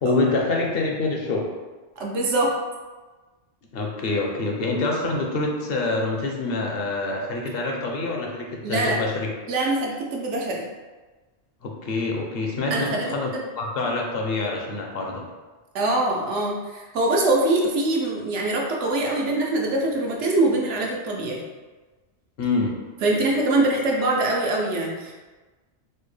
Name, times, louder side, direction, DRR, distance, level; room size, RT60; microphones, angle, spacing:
voice 1, 0.0-1.5 3.7-9.3 11.6-15.2 22.4-22.8, left 3 dB, 65° left, 0 dB, 0.8 m, -26 dB
voice 2, 2.0-2.5 8.6-9.0 9.5-10.6 12.7-13.1 13.3-13.4 15.7-21.4 23.0-25.1, right 2 dB, 85° right, -1 dB, 1.0 m, -23 dB
4.3 x 2.1 x 3.2 m, 1.3 s
omnidirectional pair, 1.2 m